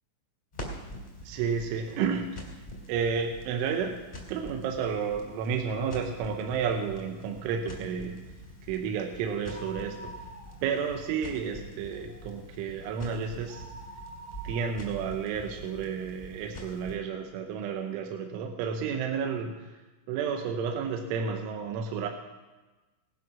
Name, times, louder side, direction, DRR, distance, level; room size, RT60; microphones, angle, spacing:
Crackle, 0.5-17.0, equal, 50° left, 0.6 m, -45 dB
voice 1, 1.2-2.5 2.9-4.0 4.3-8.2 8.7-10.2 10.6-13.6 14.4-19.7 20.1-22.1, right 6 dB, 80° right, 3 dB, 3.2 m, -31 dB
sound 1, 9.4-11.0 11.3-11.4 11.9-16.2 16.8-16.9 17.7-17.8 18.0-18.1, right 1 dB, 25° right, 1.8 m, -47 dB
17.5 x 11.0 x 6.0 m, 1.2 s
omnidirectional pair, 6.0 m